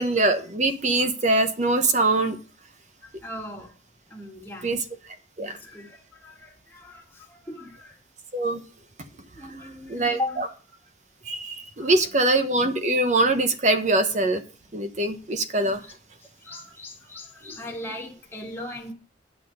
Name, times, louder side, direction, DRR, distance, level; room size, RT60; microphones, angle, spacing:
voice 1, 0.0-2.4 4.6-4.8 5.4-5.6 8.3-8.6 9.9-10.5 11.2-14.4 14.7-15.8, right 2 dB, 40° right, 1.0 m, -23 dB
voice 2, 3.0-3.7 4.1-4.7 5.4-8.0 9.3-10.5 11.8-12.1 15.8-15.9 16.4-18.9, left 2 dB, 15° left, 2.1 m, -38 dB
9.4 x 6.0 x 6.5 m
head